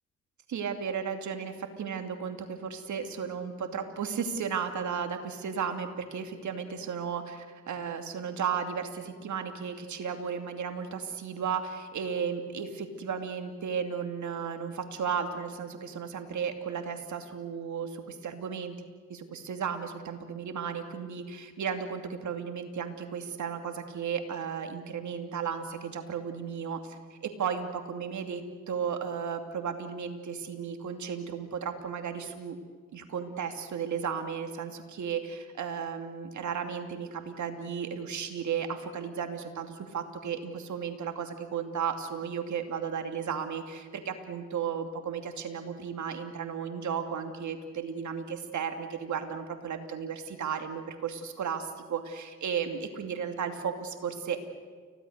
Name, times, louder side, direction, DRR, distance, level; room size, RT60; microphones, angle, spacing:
voice 1, 0.5-18.8 19.1-32.6 32.9-54.4, right 7 dB, 55° right, 6 dB, 2.8 m, -34 dB
29.5 x 16.5 x 6.7 m, 1.5 s
hypercardioid pair, 50°, 35 cm